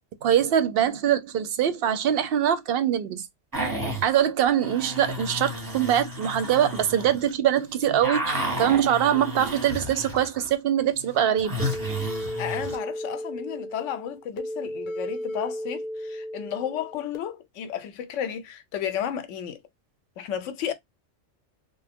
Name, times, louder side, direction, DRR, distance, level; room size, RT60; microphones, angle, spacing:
voice 1, 0.2-3.3 4.0-11.6, right 10 dB, 60° right, 0.7 m, -23 dB
sound 1, 3.5-4.1 4.6-7.3 7.6-10.5 10.8-12.8, right 1 dB, 20° right, 0.7 m, -32 dB
sound 2, 11.6-17.2, equal, 50° left, 0.7 m, -34 dB
voice 2, 12.4-19.6 20.2-20.7, left 9 dB, 85° left, 0.9 m, -33 dB
2.9 x 2.0 x 3.4 m
omnidirectional pair, 1.2 m